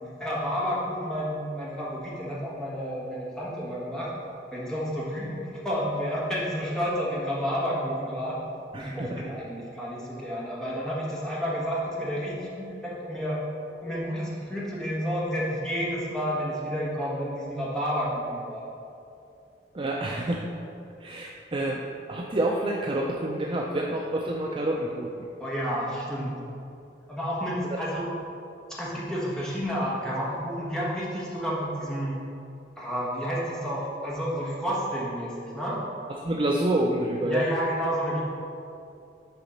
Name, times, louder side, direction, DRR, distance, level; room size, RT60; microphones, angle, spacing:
voice 1, 0.0-4.1 4.5-8.4 8.7-13.4 13.8-18.6 25.4-26.4 27.1-28.1 28.8-32.1 32.8-35.9 37.2-38.2, equal, 5° left, -7 dB, 1.4 m, -30 dB
voice 2, 8.7-9.2 19.7-20.5 21.0-21.8 22.1-25.2 36.2-37.5, right 1 dB, 30° right, -1 dB, 0.4 m, -28 dB
7.0 x 4.1 x 5.2 m, 2.6 s
head